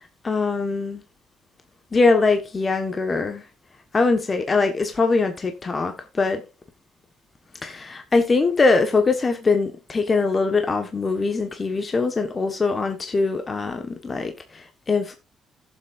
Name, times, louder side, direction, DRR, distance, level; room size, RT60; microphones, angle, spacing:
voice 1, 0.2-1.0 1.9-3.5 3.9-6.4 7.6-15.1, left 3 dB, 35° left, 1.3 m, -22 dB
17.0 x 7.4 x 2.5 m
cardioid pair, 90°, 0 cm